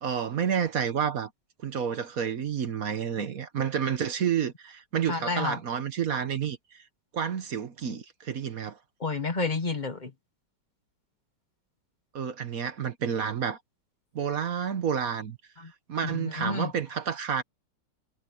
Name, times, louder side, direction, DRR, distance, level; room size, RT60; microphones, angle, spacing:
voice 1, 0.0-1.3 1.6-6.8 7.1-8.8 12.1-13.6 14.1-15.4 15.9-17.4, right 8 dB, 55° right, 1.4 m, -30 dB
voice 2, 5.1-5.6 9.0-10.1 16.1-16.7, left 3 dB, 30° left, 1.3 m, -30 dB
omnidirectional pair, 2.0 m